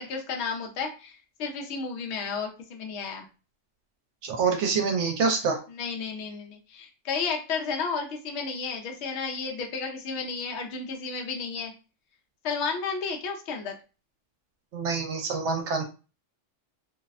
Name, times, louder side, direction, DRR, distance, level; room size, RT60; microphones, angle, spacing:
voice 1, 0.0-3.3 5.7-11.7 12.4-13.8, left 5 dB, 70° left, 2 dB, 0.8 m, -32 dB
voice 2, 4.2-5.6 14.7-15.8, right 5 dB, 70° right, 3 dB, 0.9 m, -26 dB
2.5 x 2.0 x 2.4 m, 0.33 s
omnidirectional pair, 1.3 m